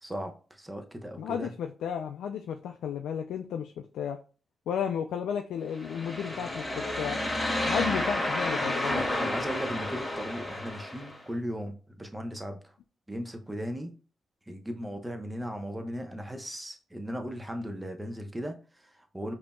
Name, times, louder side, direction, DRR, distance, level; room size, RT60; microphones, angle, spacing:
voice 1, 0.0-1.5 7.7-7.9 9.3-12.8 13.1-13.9 14.5-19.3, equal, 15° right, 5 dB, 0.9 m, -37 dB
voice 2, 1.2-4.2 4.7-7.2 7.7-9.0, left 8 dB, 90° left, 5 dB, 0.3 m, -33 dB
sound 1, 5.8-11.2, left 1 dB, 15° left, 1.7 m, -31 dB
5.0 x 2.8 x 2.2 m, 0.36 s
cardioid pair, 60°, 0 cm